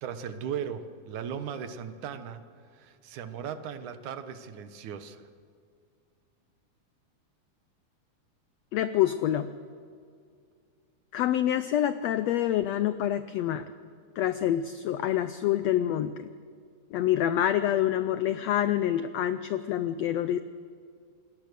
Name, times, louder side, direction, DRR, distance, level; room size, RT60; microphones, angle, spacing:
voice 1, 0.0-2.4 2.7-5.3, right 8 dB, 70° right, 10 dB, 2.5 m, -37 dB
voice 2, 8.7-9.5 11.1-13.7 14.2-16.3 16.9-20.4, left 11 dB, 85° left, 12 dB, 1.4 m, -27 dB
28.0 x 20.5 x 6.8 m, 2.2 s
omnidirectional pair, 3.8 m